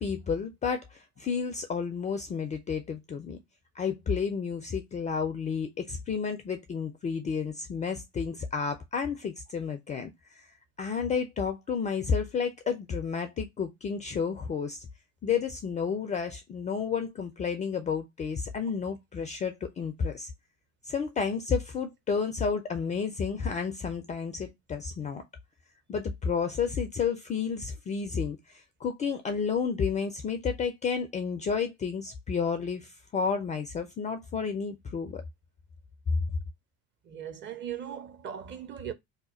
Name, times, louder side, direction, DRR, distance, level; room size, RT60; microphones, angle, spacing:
voice 1, 0.0-3.4 3.8-10.4 10.8-14.8 15.2-20.3 20.8-25.2 25.9-35.2, left 6 dB, 20° left, 0.3 m, -31 dB
voice 2, 37.0-38.9, right 9 dB, 25° right, 0.6 m, -38 dB
2.8 x 2.2 x 4.1 m
figure-of-eight pair, 60°, 42 cm